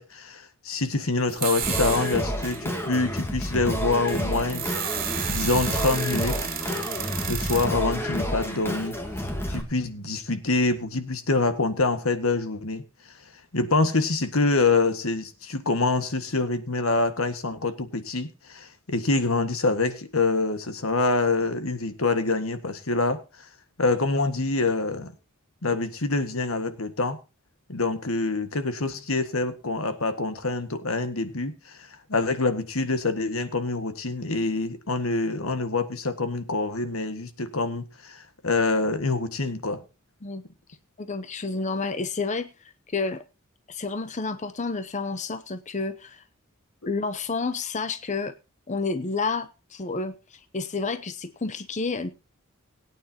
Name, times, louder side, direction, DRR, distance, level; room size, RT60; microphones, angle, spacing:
voice 1, 0.0-6.4 7.3-9.0 9.5-12.8 13.5-23.2 23.8-25.1 25.6-27.2 27.7-39.8, left 3 dB, 80° left, 1.7 m, -26 dB
sound 1, 1.3-2.7 3.2-3.3 3.8-7.7, right 9 dB, 45° right, 3.0 m, -32 dB
Singing, 1.6-9.6, equal, 10° left, 2.5 m, -30 dB
voice 2, 41.0-42.5 42.9-43.2 43.7-46.2 46.9-48.3 48.7-52.1, left 4 dB, 35° left, 0.8 m, -30 dB
21.5 x 9.3 x 2.9 m
head